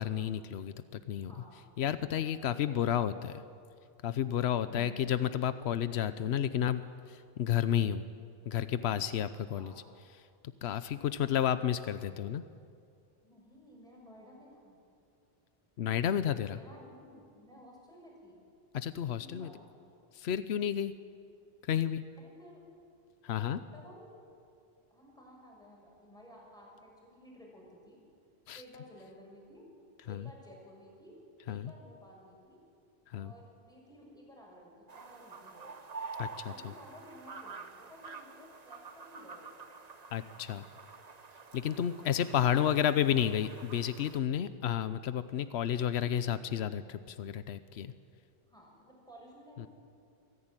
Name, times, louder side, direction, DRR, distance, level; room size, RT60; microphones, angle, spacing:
voice 1, 0.0-1.3 1.8-3.4 4.0-6.8 7.1-8.0 8.5-9.7 10.6-12.4 15.8-16.6 18.7-19.5 20.1-20.9 21.7-22.0 23.2-23.6 28.5-28.6 30.1-30.3 31.5-31.7 33.1-33.3 36.2-36.7 40.1-40.6 41.5-47.9 49.6-49.7, left 9 dB, 85° left, 12 dB, 1.0 m, -31 dB
voice 2, 1.3-1.7 2.2-2.9 4.7-5.1 9.5-9.8 13.2-14.8 16.5-18.4 19.1-19.6 22.2-22.6 23.3-24.2 24.9-28.0 28.5-29.6 30.0-31.2 31.5-32.6 33.1-35.7 36.5-39.5 41.7-43.1 48.5-49.7, equal, 5° left, -3 dB, 6.5 m, -54 dB
sound 1, 34.9-44.2, right 4 dB, 40° right, 1.1 m, -48 dB
24.0 x 15.0 x 9.0 m, 2.3 s
omnidirectional pair, 1.1 m